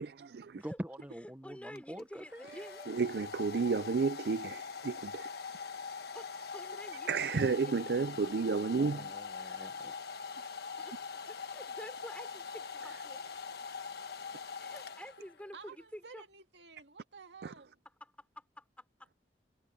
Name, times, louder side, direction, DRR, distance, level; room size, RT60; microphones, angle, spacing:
voice 1, 0.0-0.6 2.9-5.3 7.1-9.1 9.5-9.6 17.4-17.5, right 4 dB, 60° right, 0.4 m, -32 dB
voice 2, 0.5-2.9 8.8-9.9, equal, 10° right, 1.0 m, -45 dB
voice 3, 1.4-2.8 3.5-3.8 6.1-8.1 10.8-11.0 11.3-13.3 14.6-16.2 18.0-19.1, equal, 5° left, 5.3 m, -50 dB
Domestic sounds home sounds, 1.8-15.5, left 5 dB, 60° left, 1.3 m, -43 dB
voice 4, 15.5-17.8, right 5 dB, 75° right, 2.1 m, -53 dB
head